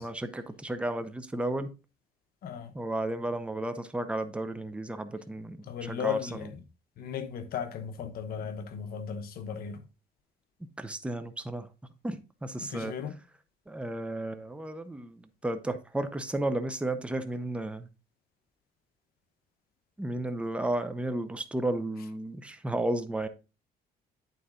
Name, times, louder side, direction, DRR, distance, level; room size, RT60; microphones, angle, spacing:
voice 1, 0.0-1.7 2.7-6.2 10.8-11.7 12.0-12.9 13.7-17.9 20.0-23.3, right 1 dB, 5° right, 0.7 m, -33 dB
voice 2, 2.4-2.7 5.7-6.6 7.0-9.8 12.6-13.1, left 7 dB, 65° left, 1.0 m, -36 dB
8.8 x 4.1 x 3.7 m
cardioid pair, 110°, 17 cm